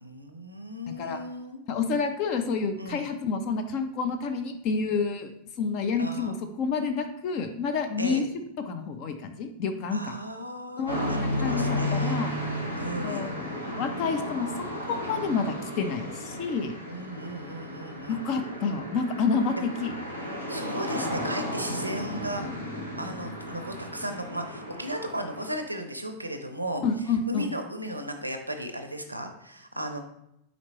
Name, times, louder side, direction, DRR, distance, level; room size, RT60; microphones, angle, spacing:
voice 1, 0.0-1.6 2.8-3.1 6.0-6.4 8.0-8.3 9.9-12.2 12.8-13.3 16.9-18.3 19.6-19.7 20.5-22.4 23.0-26.8 27.3-30.0, right 1 dB, 85° right, 7 dB, 0.5 m, -36 dB
voice 2, 0.9-1.2 1.7-5.3 5.6-8.2 8.7-10.1 10.8-12.3 13.0-13.5 13.8-14.5 14.9-16.7 18.1-19.9 26.8-27.5, left 5 dB, 40° left, 7 dB, 0.4 m, -29 dB
sound 1, 10.9-25.5, left 1 dB, 85° left, 0.9 m, -33 dB
4.3 x 4.0 x 2.9 m, 0.80 s
figure-of-eight pair, 90°, 0 cm